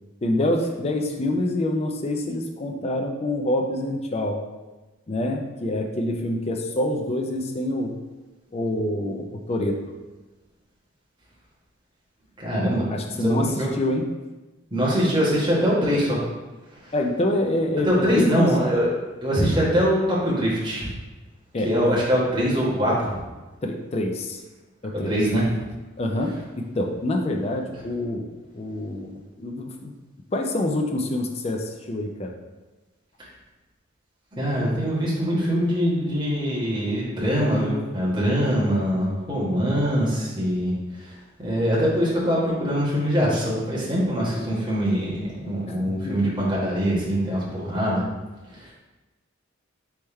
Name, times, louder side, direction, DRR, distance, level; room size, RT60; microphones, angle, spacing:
voice 1, 0.2-4.4 5.1-8.0 8.5-9.8 12.9-14.0 16.9-18.5 21.5-21.7 23.6-24.4 24.8-25.2 26.0-29.9 30.3-32.3 45.7-46.3, left 1 dB, 30° left, 2 dB, 0.4 m, -26 dB
voice 2, 12.4-12.8 13.2-13.7 14.7-16.2 17.9-18.9 19.2-20.9 21.6-23.1 24.9-25.4 34.3-40.7 41.4-48.0 48.6-48.7, equal, 25° right, -7 dB, 1.3 m, -23 dB
3.5 x 3.2 x 4.3 m, 1.2 s
head